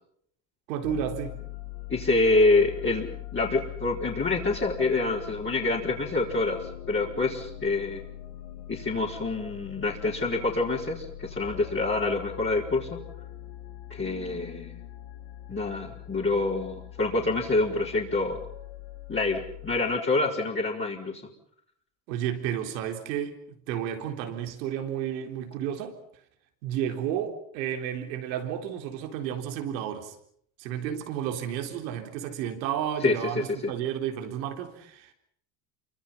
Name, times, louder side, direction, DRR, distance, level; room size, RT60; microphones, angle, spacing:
voice 1, 0.7-1.4 22.1-23.4 23.7-26.0 26.6-30.1 30.6-35.1, right 9 dB, 85° right, 4.2 m, -32 dB
sound 1, 0.8-19.8, left 13 dB, 75° left, 2.7 m, -42 dB
voice 2, 1.9-8.0 8.7-13.0 13.9-14.8 15.5-18.4 19.1-21.2 33.0-33.7, left 3 dB, 25° left, 4.6 m, -26 dB
28.0 x 25.0 x 5.8 m
supercardioid pair, 95°, 50 cm